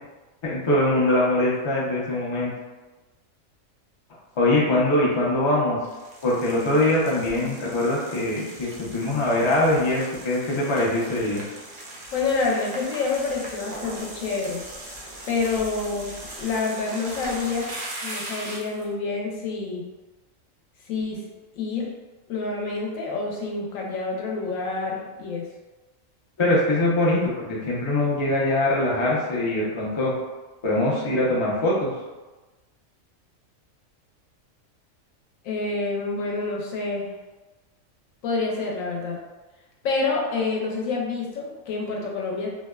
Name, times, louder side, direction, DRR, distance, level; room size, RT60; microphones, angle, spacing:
voice 1, 0.4-2.5 4.4-5.8 6.2-11.4 26.4-30.1 30.6-31.9, left 1 dB, 55° left, -5 dB, 0.3 m, -22 dB
sound 1, 5.8-18.8, right 1 dB, 70° right, 0.4 m, -39 dB
voice 2, 12.1-14.6 15.3-17.7 18.0-19.8 20.9-21.2 21.5-21.9 22.3-25.4 35.4-37.1 38.2-39.2 39.8-42.5, left 4 dB, 85° left, -2 dB, 1.0 m, -27 dB
2.7 x 2.1 x 2.2 m, 1.2 s
omnidirectional pair, 1.4 m